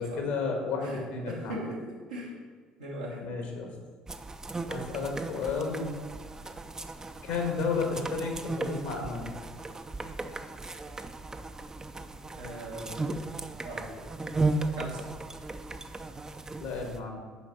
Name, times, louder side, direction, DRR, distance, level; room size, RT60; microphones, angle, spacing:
voice 1, 0.0-1.6 3.2-3.7 4.7-5.9 7.2-9.3 16.6-17.2, left 4 dB, 65° left, 2 dB, 1.6 m, -32 dB
voice 2, 1.3-2.3 2.8-3.2 12.4-13.1 13.6-14.1 14.7-15.0, equal, 85° right, -5 dB, 1.6 m, -39 dB
sound 1, 4.1-17.0, right 3 dB, 20° right, 0.6 m, -36 dB
7.0 x 5.2 x 5.4 m, 1.5 s
figure-of-eight pair, 55°, 3 cm